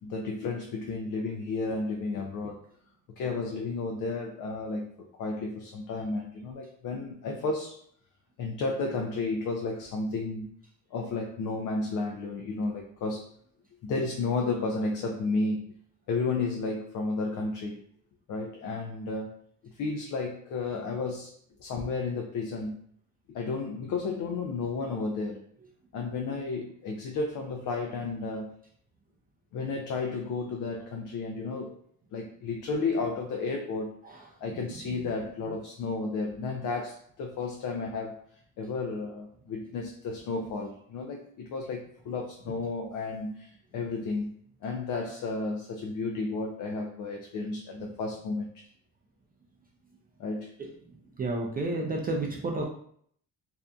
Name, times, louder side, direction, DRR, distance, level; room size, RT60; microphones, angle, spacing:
voice 1, 0.0-2.6 3.2-4.9 5.2-7.8 8.4-10.5 10.9-13.3 13.8-15.7 16.1-17.8 18.3-19.4 19.7-22.8 23.3-25.4 25.9-28.6 29.5-31.8 32.1-34.0 34.4-38.3 38.6-44.4 44.6-48.6 50.2-50.5, left 3 dB, 60° left, 2 dB, 0.5 m, -32 dB
voice 2, 51.2-52.6, right 2 dB, 25° right, -1 dB, 0.4 m, -31 dB
2.6 x 2.4 x 2.2 m, 0.63 s
cardioid pair, 95°, 35 cm